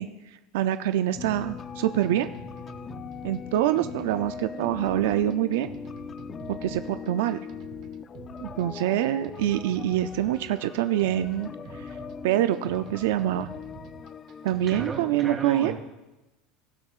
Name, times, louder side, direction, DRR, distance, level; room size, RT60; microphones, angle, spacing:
voice 1, 0.0-2.3 3.2-5.7 6.5-7.4 8.4-11.9 12.2-13.5 14.4-15.7, right 12 dB, 80° right, 10 dB, 0.4 m, -26 dB
sound 1, 1.1-15.1, right 9 dB, 50° right, 0.9 m, -48 dB
sound 2, 1.2-14.9, left 7 dB, 30° left, 0.4 m, -40 dB
voice 2, 14.7-15.7, right 4 dB, 25° right, -1 dB, 3.2 m, -34 dB
18.0 x 12.5 x 2.4 m, 1.0 s
supercardioid pair, 115°, 0 cm